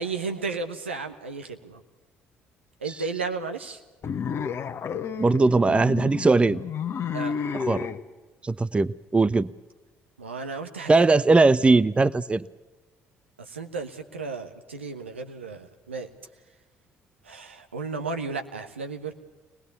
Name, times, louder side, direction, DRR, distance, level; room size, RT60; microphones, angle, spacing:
voice 1, 0.0-1.8 2.8-3.8 7.1-7.4 10.2-11.0 13.5-16.1 17.2-19.1, right 4 dB, 85° right, 5 dB, 1.2 m, -33 dB
sound 1, 4.0-8.0, left 6 dB, 45° left, 1.3 m, -31 dB
voice 2, 5.2-6.6 7.5-7.9 8.4-9.5 10.9-12.4, right 3 dB, 20° right, 21 dB, 0.6 m, -20 dB
24.0 x 19.5 x 6.9 m, 1.2 s
figure-of-eight pair, 50°, 6 cm